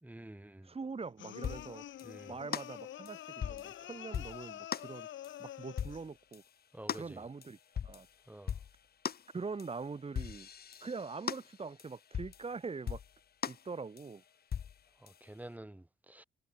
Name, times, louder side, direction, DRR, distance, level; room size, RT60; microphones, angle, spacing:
voice 1, 0.0-0.7 2.0-2.4 6.7-7.2 8.3-8.6 15.0-16.2, right 1 dB, 10° right, 3.0 m, -49 dB
voice 2, 0.6-1.8 2.3-5.1 5.4-6.4 6.9-8.1 9.3-10.5 10.8-13.0 13.5-14.2, right 4 dB, 30° right, 2.8 m, -43 dB
sound 1, 1.2-6.1, left 12 dB, 70° left, 1.6 m, -47 dB
sound 2, 1.4-1.7 2.0-2.1 2.5-2.7 3.1-3.7 4.1-4.4 4.7-4.9 5.2-5.4 5.8-6.1 6.3-6.4 6.9-7.1 7.4-8.1 8.5-8.8 9.0-9.3 9.6-9.8 10.2-12.5 12.9-13.1 13.4-13.7 14.0-14.1 14.5-14.8 15.1-15.2, left 8 dB, 50° left, 2.3 m, -39 dB
cardioid pair, 90°, 20 cm